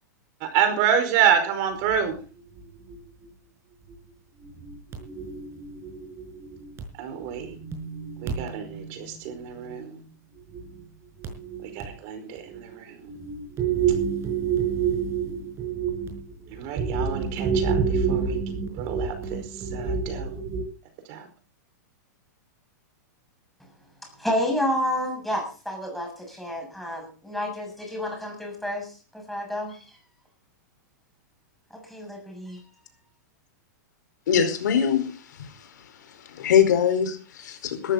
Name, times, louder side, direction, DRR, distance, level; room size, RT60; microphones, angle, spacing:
voice 1, 0.4-2.2 7.0-7.5 8.2-10.0 11.6-13.0 16.5-18.4 18.7-20.4 21.1-21.3, right 8 dB, 45° right, 5.0 m, -27 dB
sound 1, 1.9-2.1 2.6-3.0 3.2-3.3 3.9-4.0 4.4-6.8 7.2-10.0 10.4-10.9 11.2-11.9 12.4-12.7 13.0-20.6, right 6 dB, 25° right, 5.3 m, -29 dB
voice 2, 24.0-30.0 31.7-32.6, left 1 dB, ahead, 7.1 m, -30 dB
voice 3, 34.3-35.1 35.4-35.5 36.3-37.9, left 8 dB, 75° left, 4.8 m, -22 dB
18.0 x 14.0 x 4.1 m
hypercardioid pair, 145°, 10 cm